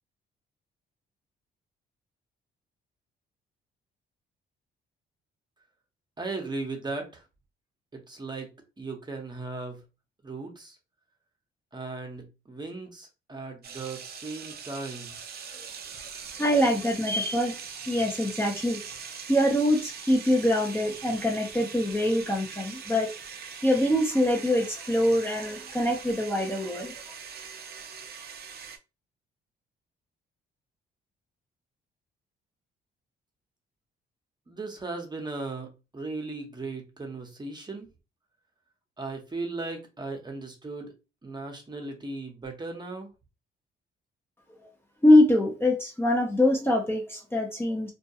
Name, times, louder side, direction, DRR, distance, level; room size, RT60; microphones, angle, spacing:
voice 1, 6.2-7.2 7.9-8.5 8.8-9.8 10.2-10.8 11.7-15.2 34.5-37.9 39.0-40.9 41.2-43.1, right 3 dB, 20° right, 0.8 m, -37 dB
sound 1, 13.6-28.8, right 6 dB, 50° right, 0.5 m, -42 dB
voice 2, 16.4-17.6 17.9-18.8 19.3-23.1 23.6-26.9 44.6-44.7 45.0-47.9, left 1 dB, 10° left, 0.6 m, -24 dB
2.3 x 2.2 x 2.7 m
cardioid pair, 90°, 20 cm